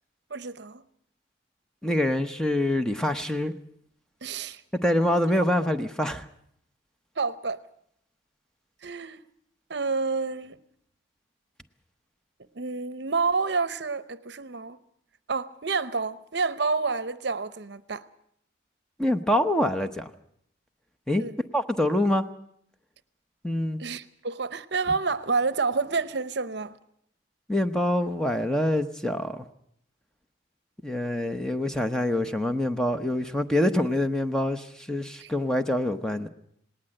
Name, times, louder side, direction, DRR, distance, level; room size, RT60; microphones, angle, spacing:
voice 1, 0.3-0.8 4.2-4.6 7.2-7.6 8.8-9.2 9.7-10.6 12.5-14.8 15.3-18.0 21.2-21.3 23.8-26.8 35.2-35.3, right 4 dB, 60° right, 0.8 m, -29 dB
voice 2, 1.8-3.5 4.8-6.2 19.0-20.1 21.1-21.2 21.5-22.2 23.4-23.8 27.5-29.4 30.8-36.3, left 1 dB, 5° left, 0.8 m, -25 dB
19.0 x 19.0 x 7.8 m
head